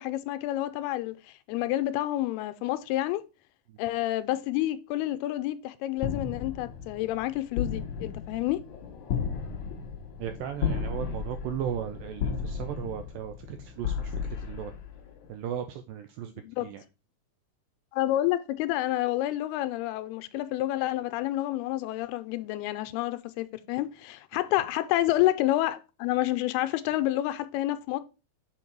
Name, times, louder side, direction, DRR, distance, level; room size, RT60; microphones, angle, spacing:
voice 1, 0.0-3.2 3.8-8.6 16.4-16.7 17.9-28.0, left 15 dB, 85° left, 2.4 m, -29 dB
sound 1, 6.0-15.3, left 6 dB, 65° left, 1.9 m, -34 dB
voice 2, 10.2-14.7 15.3-16.8 24.3-24.4, right 9 dB, 85° right, 2.0 m, -36 dB
7.1 x 4.2 x 4.5 m
omnidirectional pair, 4.6 m